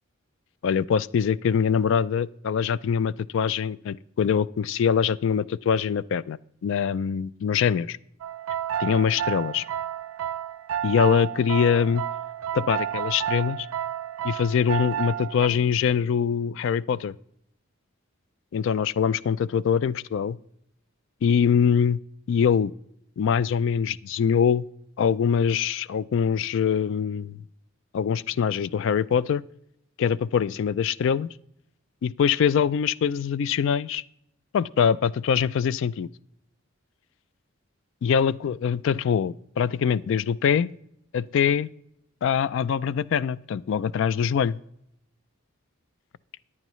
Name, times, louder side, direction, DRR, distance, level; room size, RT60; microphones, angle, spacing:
voice 1, 0.6-6.4 6.6-8.0 8.8-9.6 10.8-12.0 12.5-13.7 14.2-17.1 18.5-20.4 21.2-22.0 22.3-22.7 23.2-24.6 25.0-27.4 27.9-29.4 30.0-31.3 32.0-34.0 34.5-36.1 38.0-40.7 41.1-41.7 42.2-44.6, left 7 dB, 65° left, 19 dB, 0.3 m, -23 dB
sound 1, 8.2-15.5, right 10 dB, 85° right, 0.4 m, -31 dB
14.5 x 9.8 x 3.1 m, 0.74 s
head